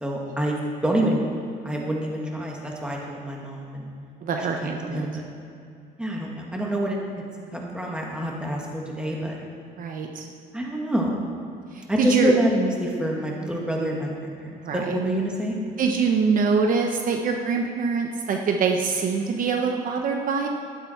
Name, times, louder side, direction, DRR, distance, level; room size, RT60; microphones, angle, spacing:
voice 1, 0.0-0.5 0.8-1.2 1.6-3.9 4.9-5.2 6.0-7.0 7.5-9.3 10.5-11.1 11.9-15.5, right 1 dB, 5° right, -2 dB, 2.3 m, -26 dB
voice 2, 4.2-5.1 9.8-10.3 11.7-12.3 14.6-14.9 15.8-20.5, right 5 dB, 55° right, 3 dB, 1.1 m, -24 dB
12.0 x 11.5 x 4.6 m, 2.5 s
cardioid pair, 110°, 17 cm